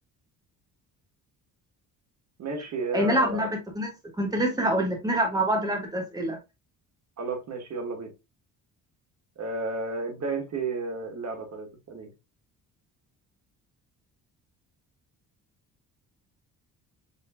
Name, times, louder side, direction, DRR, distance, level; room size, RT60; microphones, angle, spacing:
voice 1, 2.4-3.5 7.2-8.1 9.4-12.1, right 3 dB, 45° right, 1.3 m, -32 dB
voice 2, 2.9-6.4, right 1 dB, 10° right, 1.3 m, -26 dB
7.0 x 2.9 x 2.4 m
cardioid pair, 150°, 37 cm